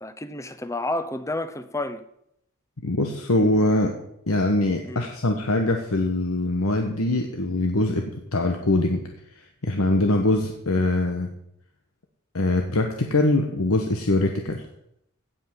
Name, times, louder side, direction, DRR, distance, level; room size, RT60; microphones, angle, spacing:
voice 1, 0.0-2.0 4.9-5.0, left 2 dB, 15° left, 0.7 m, -30 dB
voice 2, 2.8-3.9 4.3-9.0 9.6-11.3 12.3-14.6, left 2 dB, 90° left, 1.3 m, -23 dB
16.0 x 5.6 x 7.3 m
head